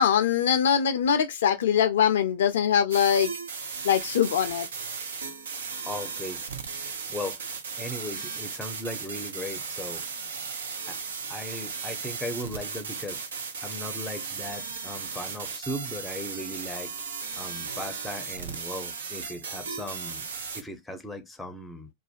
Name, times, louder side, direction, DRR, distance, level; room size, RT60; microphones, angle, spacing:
voice 1, 0.0-3.3 3.8-4.7, left 8 dB, 60° left, 0.4 m, -22 dB
sound 1, 2.9-20.6, right 5 dB, 65° right, 0.5 m, -36 dB
voice 2, 5.9-6.4 6.8-10.0 10.9-11.0 11.3-13.2 13.6-16.9 17.4-20.3 20.5-21.9, left 1 dB, 5° left, 0.6 m, -37 dB
2.4 x 2.1 x 2.4 m
figure-of-eight pair, 90°, 0 cm